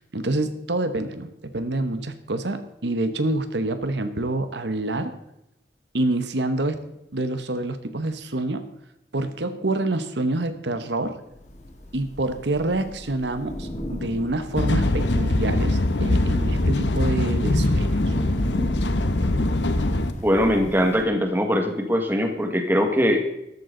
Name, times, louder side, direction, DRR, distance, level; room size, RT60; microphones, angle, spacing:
voice 1, 0.1-5.1 5.9-6.8 7.1-8.7 9.1-11.2 11.9-18.1, right 2 dB, 80° right, 10 dB, 1.1 m, -27 dB
Thunder / Rain, 11.3-21.0, left 1 dB, 40° left, 2.0 m, -36 dB
sound 1, 14.6-20.1, left 1 dB, 85° left, 1.1 m, -22 dB
voice 2, 20.2-23.2, equal, 10° right, 4 dB, 1.7 m, -21 dB
13.5 x 12.5 x 3.9 m, 0.85 s
head